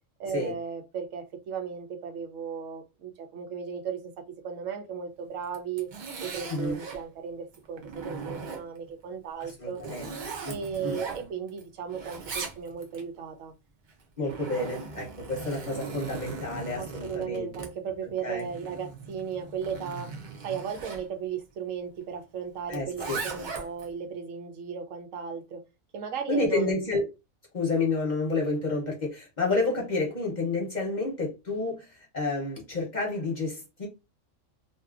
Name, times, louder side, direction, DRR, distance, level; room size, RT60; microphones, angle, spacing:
voice 1, 0.2-5.9 6.2-9.8 10.5-13.5 16.7-20.1 20.4-25.6 25.9-26.7, right 7 dB, 80° right, 1.0 m, -36 dB
Zipper (clothing), 5.4-7.0 7.5-8.9 9.4-11.6 11.9-13.0 13.9-21.0 22.7-23.9, right 4 dB, 50° right, 0.6 m, -39 dB
voice 2, 9.6-10.1 10.4-11.0 14.2-17.5 18.2-18.4 22.7-23.2 26.3-27.0 27.5-33.9, left 3 dB, 40° left, 0.7 m, -30 dB
2.6 x 2.3 x 2.4 m
omnidirectional pair, 1.4 m